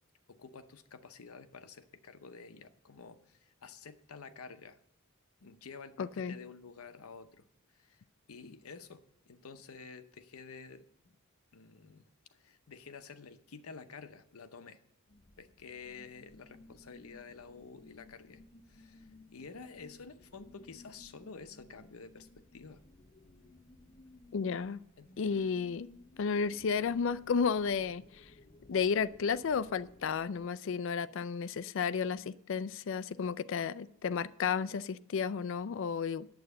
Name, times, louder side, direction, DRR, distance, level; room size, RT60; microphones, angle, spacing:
voice 1, 0.3-4.8 5.4-8.0 8.3-11.2 11.5-12.1 12.3-14.8 15.4-18.4 18.7-22.8 25.0-25.6, left 5 dB, 80° left, 10 dB, 0.7 m, -50 dB
voice 2, 6.0-6.4 24.3-24.8 25.2-25.9 26.2-28.3 28.7-36.3, left 6 dB, 60° left, 15 dB, 0.4 m, -32 dB
sound 1, 15.1-30.5, left 2 dB, 35° left, 0.8 m, -59 dB
9.2 x 7.8 x 6.6 m, 0.77 s
head